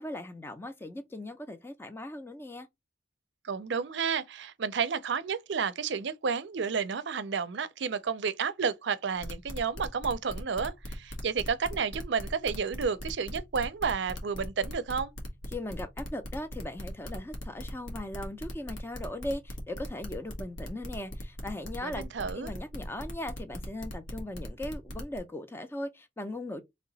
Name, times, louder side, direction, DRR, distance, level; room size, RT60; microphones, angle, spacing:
voice 1, 0.0-2.7 15.5-22.0 22.3-26.6, left 1 dB, 10° left, 0.4 m, -38 dB
voice 2, 3.4-15.1 21.8-22.5, right 6 dB, 70° right, 0.5 m, -31 dB
sound 1, 9.2-25.2, equal, 85° left, 1.3 m, -40 dB
3.2 x 2.8 x 4.0 m
head